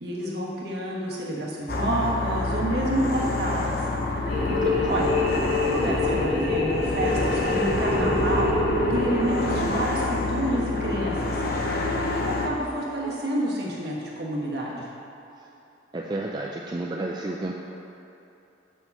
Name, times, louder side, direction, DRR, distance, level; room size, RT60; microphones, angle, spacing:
voice 1, 0.0-3.8 4.9-5.1 5.7-8.5 8.9-11.4 12.0-14.9, right 1 dB, 60° right, -4 dB, 1.4 m, -29 dB
sound 1, 1.7-12.5, left 2 dB, 50° left, 0.6 m, -28 dB
sound 2, 4.3-10.0, left 2 dB, 80° left, 1.5 m, -26 dB
voice 2, 4.5-4.9 15.9-17.5, right 2 dB, 25° right, -2 dB, 0.3 m, -31 dB
5.6 x 4.9 x 6.6 m, 2.9 s
head